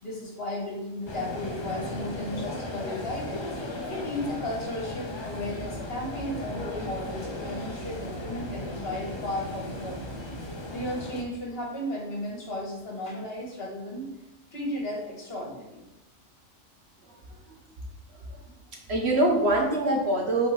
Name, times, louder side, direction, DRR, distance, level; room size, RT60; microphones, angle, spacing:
voice 1, 0.0-3.5 3.9-10.0 10.7-14.1 14.5-15.8, left 1 dB, 50° left, -2 dB, 1.8 m, -34 dB
sound 1, 1.1-11.2, left 1 dB, 30° left, 0.6 m, -36 dB
voice 2, 17.0-17.6 18.1-18.4 18.9-20.5, right 1 dB, 55° right, 0 dB, 1.3 m, -25 dB
8.0 x 4.3 x 3.4 m, 0.98 s
omnidirectional pair, 1.3 m